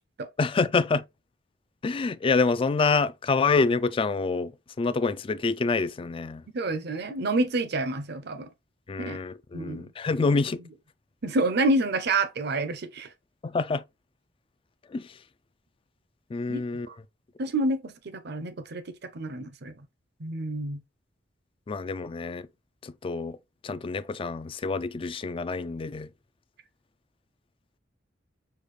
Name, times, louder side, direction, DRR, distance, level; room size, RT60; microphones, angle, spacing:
voice 1, 0.4-1.0 1.8-4.5 4.8-6.4 8.9-10.6 13.4-13.8 14.9-15.0 16.3-16.9 21.7-22.5 22.8-23.4 23.6-26.1, left 4 dB, 30° left, 0.3 m, -26 dB
voice 2, 6.5-8.5 9.0-9.2 9.5-9.9 10.2-10.4 11.2-13.1 16.5-16.6 16.9-17.0 17.4-19.7 20.2-20.8, right 2 dB, 60° right, 0.6 m, -28 dB
6.6 x 2.3 x 3.1 m
head